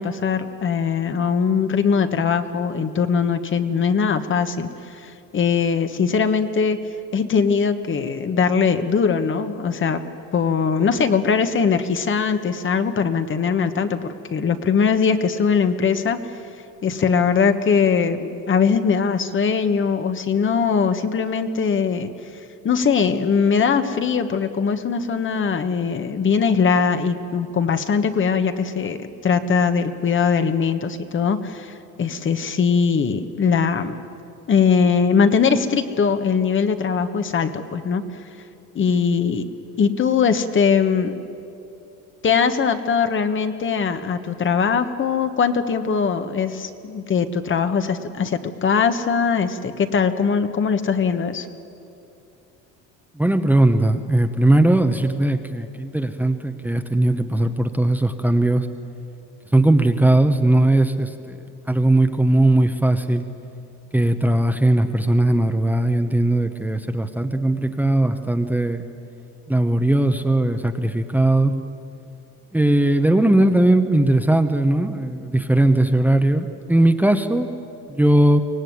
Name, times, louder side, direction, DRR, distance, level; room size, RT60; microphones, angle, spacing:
voice 1, 0.0-4.7 5.0-6.8 7.1-10.0 10.3-16.2 16.8-22.1 22.6-34.0 34.5-38.0 38.7-39.5 39.8-41.1 42.2-51.5, left 6 dB, 35° left, 8 dB, 1.4 m, -21 dB
voice 2, 53.1-58.7 59.5-61.4 61.7-63.3 63.9-68.8 69.5-71.6 72.5-77.5 77.9-78.4, right 1 dB, 5° right, 7 dB, 1.1 m, -18 dB
24.0 x 17.5 x 9.5 m, 2.7 s
cardioid pair, 110°, 34 cm